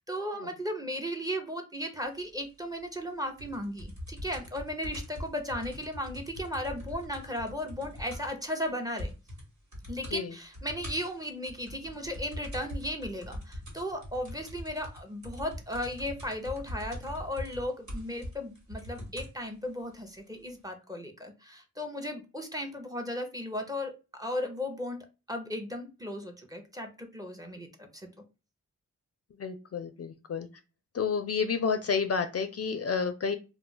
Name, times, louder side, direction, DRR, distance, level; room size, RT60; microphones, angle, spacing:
voice 1, 0.0-9.1 9.9-28.1, left 1 dB, 10° right, 4 dB, 0.7 m, -36 dB
sound 1, 3.4-8.4 8.7-8.8 9.0-9.4 9.7-10.2 10.5-19.4 20.2-20.3, left 1 dB, 60° right, 1.4 m, -42 dB
voice 2, 29.4-30.5 30.9-33.4, left 5 dB, 50° left, 9 dB, 0.4 m, -30 dB
2.3 x 2.0 x 3.7 m, 0.30 s
cardioid pair, 55°, 32 cm